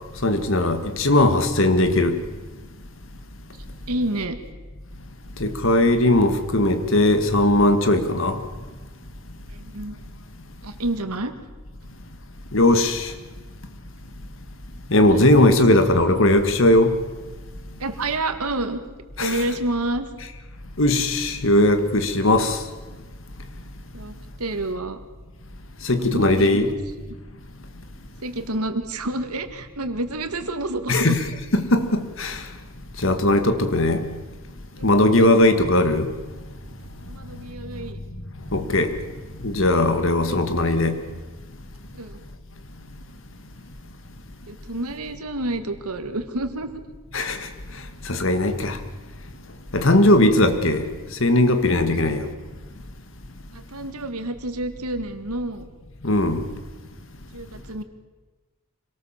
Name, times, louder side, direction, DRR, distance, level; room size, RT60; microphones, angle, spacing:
voice 1, 0.2-2.2 5.4-8.4 12.5-13.1 14.9-17.0 19.2-19.4 20.8-22.6 25.8-26.7 30.9-31.2 31.5-32.4 33.0-34.0 34.8-36.1 38.5-38.9 39.4-41.0 47.1-47.4 48.1-48.8 49.7-50.9 51.2-52.3 56.0-56.4, left 1 dB, 60° left, 1.8 m, -19 dB
voice 2, 3.9-4.4 9.5-10.0 10.6-11.3 15.5-15.6 17.8-18.8 19.2-20.1 23.9-25.0 26.0-26.8 28.2-31.2 34.8-34.9 37.1-38.0 39.8-40.4 41.9-42.2 44.5-46.8 53.5-55.7 57.3-57.8, right 2 dB, 85° right, 1.9 m, -29 dB
25.5 x 18.5 x 7.4 m
head